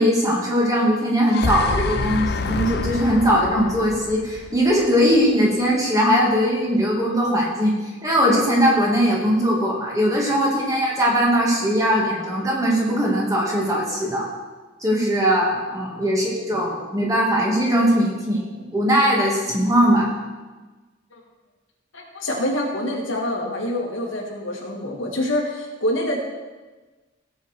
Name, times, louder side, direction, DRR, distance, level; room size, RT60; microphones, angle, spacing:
voice 1, 0.0-7.7 8.0-14.3 14.8-20.1, equal, 15° right, -3 dB, 2.5 m, -20 dB
sound 1, 1.1-5.2, left 3 dB, 55° left, 0.6 m, -27 dB
voice 2, 21.9-26.2, left 1 dB, 90° left, -1 dB, 2.4 m, -26 dB
16.5 x 7.3 x 4.6 m, 1.3 s
head